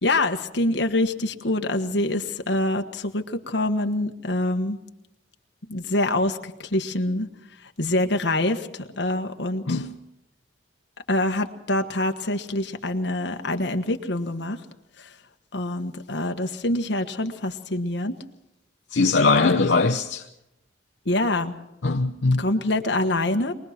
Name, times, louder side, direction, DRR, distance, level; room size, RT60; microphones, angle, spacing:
voice 1, 0.0-4.8 5.7-7.3 7.8-9.8 11.1-14.6 15.5-18.1 21.0-21.6 22.4-23.5, left 1 dB, 65° left, 1.5 m, -25 dB
voice 2, 18.9-20.3 21.8-22.5, left 3 dB, 80° left, 0.8 m, -21 dB
23.5 x 20.0 x 6.0 m
head